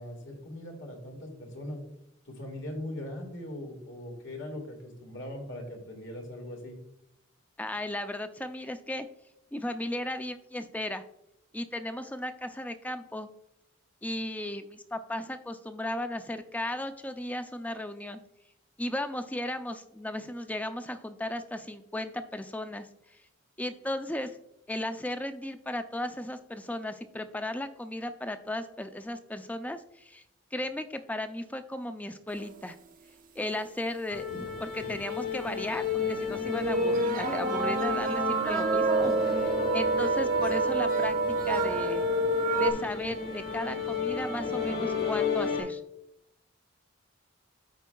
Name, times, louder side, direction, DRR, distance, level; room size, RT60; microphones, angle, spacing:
voice 1, 0.0-1.8 2.2-6.7, left 1 dB, 70° left, 2 dB, 1.8 m, -40 dB
voice 2, 7.6-9.1 9.5-11.0 11.5-13.3 14.0-18.2 18.8-23.2 23.6-24.3 24.7-30.2 30.5-32.8 33.4-41.2 41.5-42.1 42.6-45.8, left 1 dB, 10° left, 9 dB, 0.4 m, -35 dB
sound 1, 34.1-45.6, left 5 dB, 50° left, 1.8 m, -33 dB
sound 2, 34.7-34.8 35.6-35.7 36.4-42.7, right 2 dB, 45° right, 0.7 m, -27 dB
13.5 x 4.6 x 2.3 m, 0.81 s
head